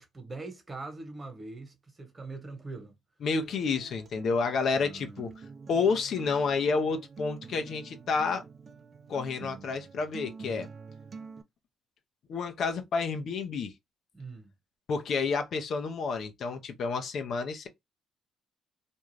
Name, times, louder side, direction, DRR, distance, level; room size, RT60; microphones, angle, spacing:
voice 1, 0.0-2.9 4.7-5.3 14.1-14.5, right 3 dB, 30° right, 1.2 m, -42 dB
voice 2, 3.2-5.3 5.7-8.4 9.1-10.7 12.3-13.7 14.9-17.7, left 4 dB, 60° left, 0.5 m, -30 dB
Acoustic guitar, 3.4-11.4, right 5 dB, 45° right, 0.4 m, -47 dB
2.5 x 2.3 x 3.1 m
supercardioid pair, 65°, 0 cm